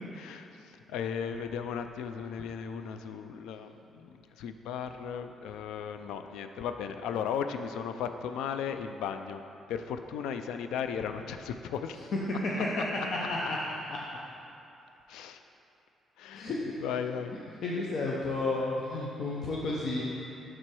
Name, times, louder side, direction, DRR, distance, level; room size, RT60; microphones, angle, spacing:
voice 1, 0.1-0.5 0.9-9.4 9.7-12.0 12.5-12.6 15.1-15.4 16.2-16.5 16.8-17.3, left 7 dB, 90° left, 8 dB, 0.3 m, -36 dB
voice 2, 13.1-13.6 13.9-14.0 16.3-16.6 17.6-20.0, left 2 dB, 65° left, -4 dB, 0.7 m, -31 dB
6.1 x 4.4 x 4.7 m, 2.8 s
cardioid pair, 90°, 0 cm